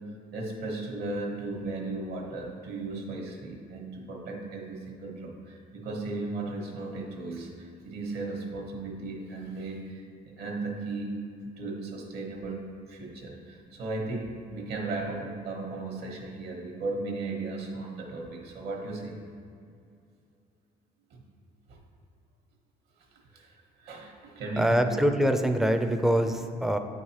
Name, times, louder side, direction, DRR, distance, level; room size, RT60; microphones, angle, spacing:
voice 1, 0.3-19.2 21.1-21.2 21.7-21.8 23.3-23.5 23.8-25.0, right 2 dB, 70° right, 2 dB, 1.1 m, -36 dB
voice 2, 24.6-26.8, equal, ahead, 7 dB, 0.4 m, -24 dB
8.5 x 4.7 x 2.9 m, 2.4 s
cardioid pair, 110°, 17 cm